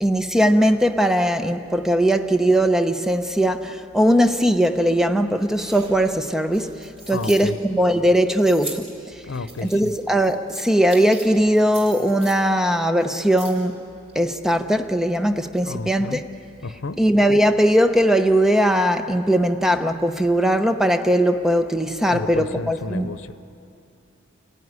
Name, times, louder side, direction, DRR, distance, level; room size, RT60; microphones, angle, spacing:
voice 1, 0.0-6.7 7.1-8.9 9.6-13.8 14.1-16.2 17.0-23.1, equal, ahead, 7 dB, 0.8 m, -19 dB
sound 1, 5.4-7.5 8.3-8.9 9.3-11.3 11.6-12.4 13.0-13.7 14.1-14.2, right 2 dB, 30° right, 4.2 m, -40 dB
voice 2, 7.1-7.6 9.3-9.9 15.6-16.3 16.6-17.1 22.1-23.3, left 3 dB, 90° left, 13 dB, 0.7 m, -31 dB
29.5 x 16.5 x 9.6 m, 2.8 s
head